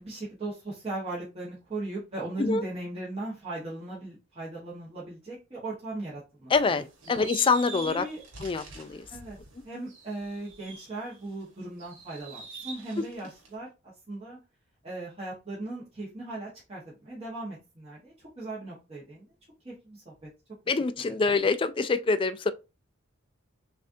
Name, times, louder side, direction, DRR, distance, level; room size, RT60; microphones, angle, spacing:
voice 1, 0.0-6.5 7.1-7.3 7.9-8.2 9.1-9.4 9.6-14.4 14.8-19.3 19.6-20.3, right 2 dB, 30° right, 1.3 m, -38 dB
voice 2, 6.5-8.1 8.4-9.0 13.0-13.1 20.7-22.5, left 4 dB, 25° left, 0.3 m, -25 dB
sound 1, 6.5-11.3 11.8-13.5, right 4 dB, 70° right, 1.4 m, -45 dB
6.6 x 2.5 x 2.7 m
head